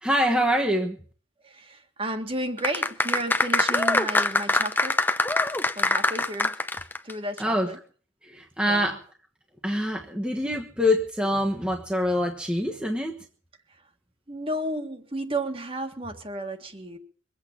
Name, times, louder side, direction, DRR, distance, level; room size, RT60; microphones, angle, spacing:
voice 1, 0.0-1.0 7.4-7.7 8.2-9.0 9.6-13.1, equal, 5° right, 0 dB, 1.3 m, -25 dB
voice 2, 1.4-5.0 5.8-6.6 7.0-7.8 8.7-9.0 14.3-17.0, right 1 dB, 30° right, 6 dB, 1.8 m, -32 dB
sound 1, 2.6-7.1 7.4-7.5, left 2 dB, 10° left, 0.7 m, -23 dB
23.0 x 8.5 x 7.3 m, 0.43 s
head